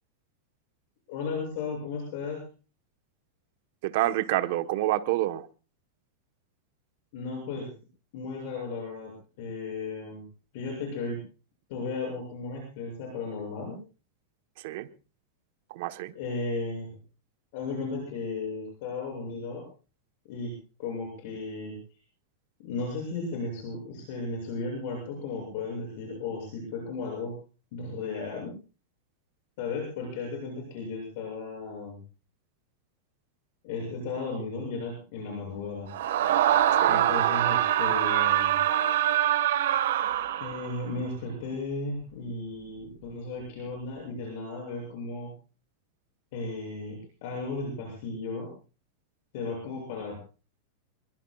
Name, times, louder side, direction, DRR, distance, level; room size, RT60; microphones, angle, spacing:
voice 1, 1.1-2.4 7.1-7.7 8.1-10.2 10.5-11.2 11.7-13.8 16.2-16.9 17.5-19.6 20.3-20.5 20.8-21.8 22.6-27.3 27.7-28.5 29.6-32.0 33.6-35.9 36.9-38.6 40.4-45.3 46.3-48.5 49.3-50.2, left 3 dB, 45° left, 0 dB, 7.4 m, -35 dB
voice 2, 3.8-5.5 14.6-14.9 15.7-16.1 36.8-37.0, right 15 dB, 45° right, 10 dB, 1.1 m, -28 dB
Screaming, 35.9-40.8, right 11 dB, 70° right, 1.5 m, -24 dB
25.5 x 23.0 x 2.4 m, 0.36 s
supercardioid pair, 175°, 0 cm